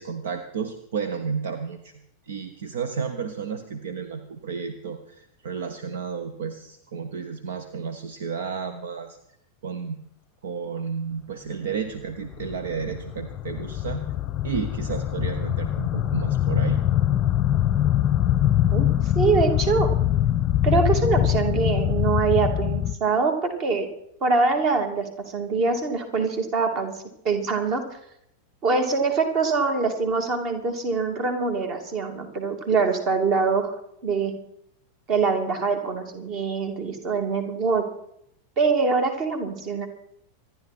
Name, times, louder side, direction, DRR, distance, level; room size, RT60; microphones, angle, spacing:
voice 1, 0.0-1.9 2.3-9.2 9.6-10.0 10.4-14.0 14.4-16.8, right 6 dB, 60° right, 10 dB, 1.1 m, -32 dB
sound 1, 12.1-22.9, left 12 dB, 30° left, 0.7 m, -23 dB
voice 2, 18.7-19.9 20.6-23.9 24.2-26.9 27.2-27.8 28.6-33.7 34.0-34.4 35.1-37.9 38.6-39.9, right 4 dB, 40° right, 6 dB, 2.8 m, -24 dB
26.0 x 11.0 x 4.4 m, 0.73 s
figure-of-eight pair, 90°, 0 cm